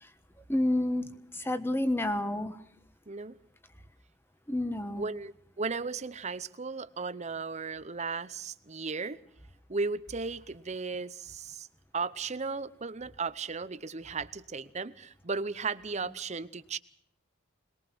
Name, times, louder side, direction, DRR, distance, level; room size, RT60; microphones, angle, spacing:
voice 1, 0.5-2.6 4.5-5.1, left 1 dB, 10° left, 1.3 m, -29 dB
voice 2, 3.1-3.4 5.0-9.2 9.7-11.7 11.9-16.8, right 4 dB, 35° right, 0.8 m, -35 dB
22.5 x 20.5 x 6.1 m
head